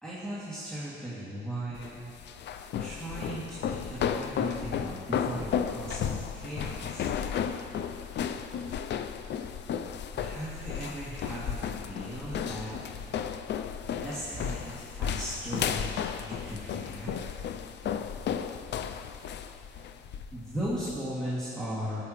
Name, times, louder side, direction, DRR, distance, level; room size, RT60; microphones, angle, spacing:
voice 1, 0.0-2.1 2.8-7.1 10.2-12.8 14.0-17.1 20.3-22.0, right 1 dB, 5° left, -11 dB, 2.4 m, -37 dB
sound 1, 1.7-21.0, left 8 dB, 60° left, 0.5 m, -34 dB
15.5 x 8.5 x 3.1 m, 2.9 s
cardioid pair, 90°, 20 cm